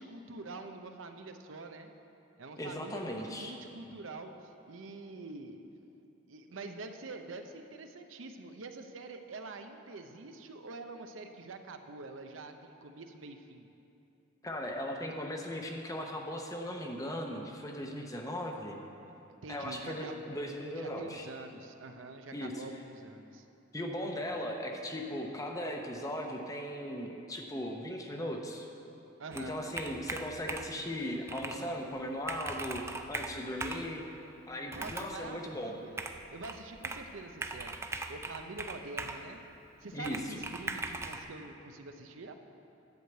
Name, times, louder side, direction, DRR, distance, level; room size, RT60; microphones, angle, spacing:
voice 1, 0.0-1.9 2.4-5.6 6.3-13.7 19.3-23.5 24.2-24.3 29.2-29.7 34.6-36.0 36.3-37.7 38.1-39.4 39.8-42.3, right 3 dB, 85° right, 6 dB, 0.6 m, -46 dB
voice 2, 2.6-3.5 14.4-18.8 19.5-21.3 22.3-22.6 23.7-28.7 29.3-32.8 33.1-34.0 34.5-35.7 39.9-40.4, equal, 15° left, 2 dB, 0.7 m, -38 dB
Computer keyboard, 29.3-30.8 31.3-31.6 32.0-32.1 32.2-33.9 34.7-35.2 36.0-37.1 37.4-39.2 40.0-41.2, right 3 dB, 15° right, 0.3 m, -39 dB
10.5 x 4.8 x 7.9 m, 2.8 s
head